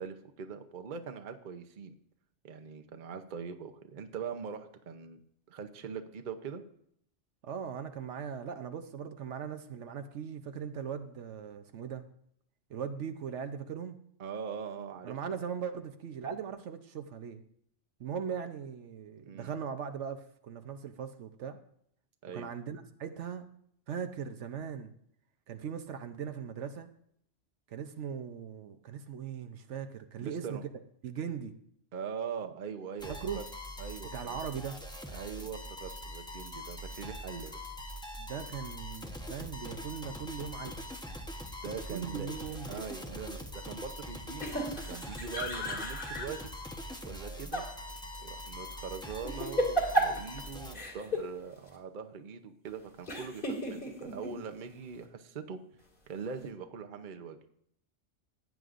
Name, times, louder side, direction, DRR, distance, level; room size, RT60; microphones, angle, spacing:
voice 1, 0.0-1.9 2.4-5.2 5.5-6.6 14.2-15.4 19.2-19.5 22.2-22.5 30.2-30.6 31.9-33.4 33.8-34.4 35.1-37.6 41.6-42.3 42.7-46.5 47.0-47.7 48.2-55.6 56.1-57.4, right 6 dB, 45° right, 7 dB, 0.8 m, -42 dB
voice 2, 7.4-12.0 12.7-14.0 15.0-17.4 18.0-21.6 22.3-23.5 23.9-24.9 25.5-26.9 27.7-30.6 31.0-31.5 33.1-33.4 34.1-34.8 38.2-40.9 41.9-42.8, right 7 dB, 75° right, 8 dB, 1.1 m, -39 dB
sound 1, 33.0-50.8, left 1 dB, 5° left, 0.8 m, -43 dB
sound 2, 42.4-42.9 44.4-46.4 47.1-47.7 48.0-48.1 49.1-50.4 50.7-51.3 51.7-51.8 53.1-54.3, right 1 dB, 45° left, 2.4 m, -33 dB
15.5 x 9.5 x 2.5 m, 0.67 s
omnidirectional pair, 1.3 m